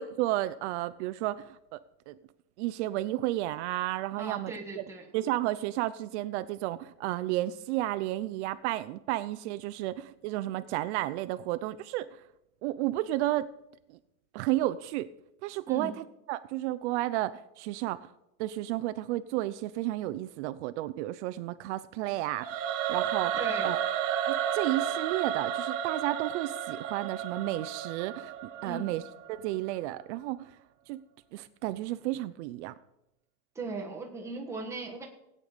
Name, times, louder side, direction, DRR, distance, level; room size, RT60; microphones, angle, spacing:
voice 1, 0.0-1.8 2.1-2.2 2.6-4.8 5.1-12.2 12.6-13.5 13.9-14.0 14.3-15.1 15.4-18.1 18.4-22.5 22.9-23.4 23.6-23.8 24.3-29.0 29.3-30.5 30.9-31.0 31.3-32.7, right 15 dB, 70° right, 13 dB, 0.6 m, -32 dB
voice 2, 4.2-5.1 15.7-15.9 23.4-23.7 28.6-29.0 33.5-35.1, right 3 dB, 10° right, 0 dB, 1.7 m, -38 dB
Singing / Musical instrument, 22.4-29.5, right 9 dB, 85° right, 1.6 m, -32 dB
17.5 x 9.1 x 5.1 m, 0.85 s
cardioid pair, 180°, 36 cm